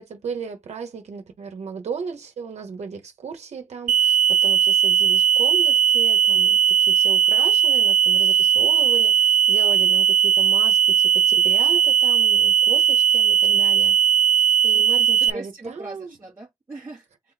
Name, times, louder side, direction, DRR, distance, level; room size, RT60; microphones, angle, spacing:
voice 1, 0.0-13.9 14.4-16.2, right 5 dB, 55° right, 1.0 m, -35 dB
sound 1, 3.9-15.3, right 9 dB, 75° right, 0.4 m, -18 dB
voice 2, 14.7-17.3, right 2 dB, 20° right, 1.0 m, -39 dB
3.8 x 3.1 x 3.9 m
wide cardioid pair, 165°, 14 cm